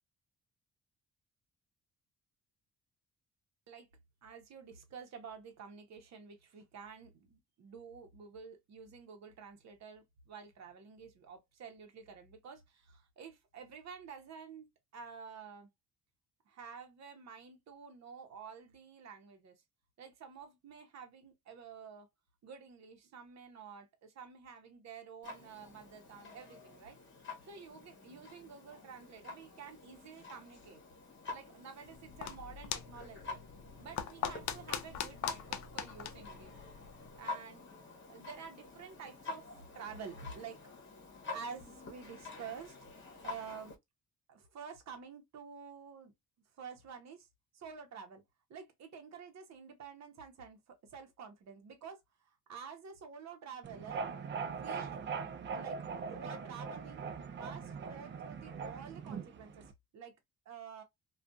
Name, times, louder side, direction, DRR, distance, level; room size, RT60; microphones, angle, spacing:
voice 1, 4.2-14.7 14.9-15.7 16.5-19.5 20.0-22.1 22.4-27.0 27.4-30.8 31.3-33.4 33.8-36.5 37.2-37.6 38.1-39.5 39.7-40.6 41.3-42.7 43.2-43.7 44.3-46.1 46.6-47.3 47.5-48.2 48.5-54.0 54.4-55.0 55.5-55.8 56.1-59.7 59.9-60.1 60.4-60.8, right 6 dB, 60° right, 0.9 m, -50 dB
Clock, 25.2-43.8, left 3 dB, 40° left, 1.0 m, -49 dB
sound 1, 31.8-37.2, left 9 dB, 70° left, 0.5 m, -42 dB
sound 2, 53.6-59.7, right 5 dB, 40° right, 0.5 m, -41 dB
2.5 x 2.4 x 2.2 m
cardioid pair, 90°, 30 cm